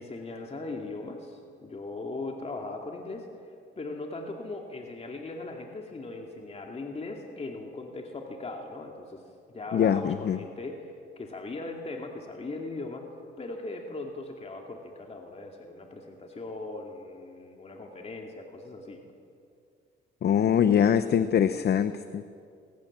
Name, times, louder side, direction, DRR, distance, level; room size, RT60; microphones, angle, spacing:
voice 1, 0.0-3.3 3.8-9.2 9.5-10.9 11.2-13.0 13.4-19.0, left 2 dB, 30° left, 1 dB, 2.5 m, -39 dB
voice 2, 9.7-10.4 20.2-22.2, left 8 dB, 55° left, 12 dB, 0.8 m, -23 dB
22.5 x 19.0 x 7.5 m, 2.3 s
cardioid pair, 90°, 20 cm